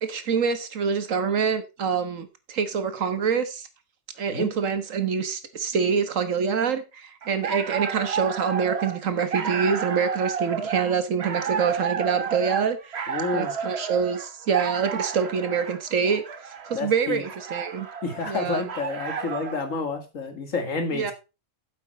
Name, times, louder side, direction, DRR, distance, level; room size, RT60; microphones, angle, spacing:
voice 1, 0.0-3.7 4.2-12.8 13.3-16.2 16.7-17.9 18.3-18.6 20.9-21.1, right 6 dB, 85° right, 10 dB, 1.6 m, -25 dB
sound 1, 7.2-19.7, right 6 dB, 55° right, 1.3 m, -31 dB
voice 2, 13.1-13.5 16.7-17.2 18.0-21.1, left 4 dB, 85° left, 7 dB, 2.2 m, -29 dB
8.9 x 7.6 x 4.3 m, 0.28 s
omnidirectional pair, 1.3 m